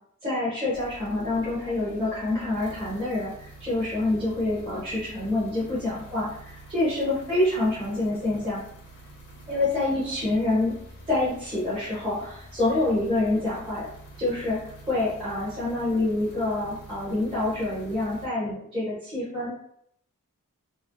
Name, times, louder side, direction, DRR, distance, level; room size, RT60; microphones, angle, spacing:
voice 1, 0.2-8.6 9.5-10.8 11.1-13.9 14.2-19.5, left 2 dB, 25° right, -11 dB, 0.9 m, -27 dB
sound 1, 0.7-18.3, right 1 dB, 55° left, 0.7 m, -47 dB
3.0 x 2.0 x 2.5 m, 0.69 s
head